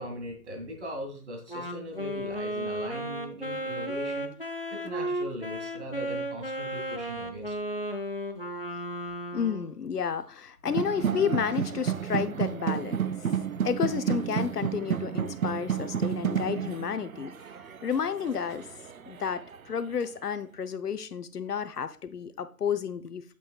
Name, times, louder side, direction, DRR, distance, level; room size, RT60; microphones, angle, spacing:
voice 1, 0.0-4.3 4.7-7.5, equal, 45° right, 2 dB, 2.1 m, -39 dB
Wind instrument woodwind instrument, 1.5-9.8, right 1 dB, 40° left, 0.5 m, -34 dB
voice 2, 9.3-13.0 13.6-17.3 17.8-18.7 19.1-23.3, left 7 dB, 75° left, 11 dB, 0.8 m, -31 dB
sound 1, 10.7-19.6, right 8 dB, 60° right, 0.6 m, -31 dB
8.9 x 7.1 x 2.3 m, 0.41 s
figure-of-eight pair, 165°, 47 cm